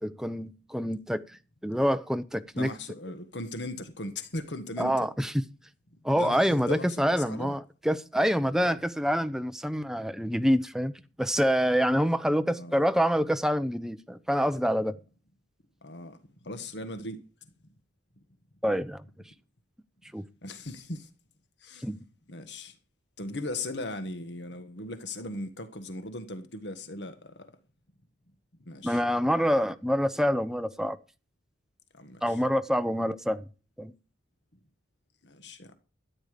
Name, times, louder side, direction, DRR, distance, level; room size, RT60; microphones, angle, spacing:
voice 1, 0.0-1.2 1.6-2.7 4.8-5.3 6.0-10.9 11.2-15.0 18.6-19.0 20.1-20.2 21.8-22.0 28.8-31.0 32.2-33.4 33.8-33.9, equal, 5° right, 0.8 m, -26 dB
voice 2, 2.5-5.0 6.1-7.6 8.5-8.8 12.5-12.8 15.8-17.2 20.4-21.1 21.6-21.9 22.3-22.7 23.2-27.5 28.6-29.0 31.9-32.4 35.2-35.7, left 2 dB, 65° left, 1.6 m, -38 dB
13.0 x 10.0 x 5.1 m
head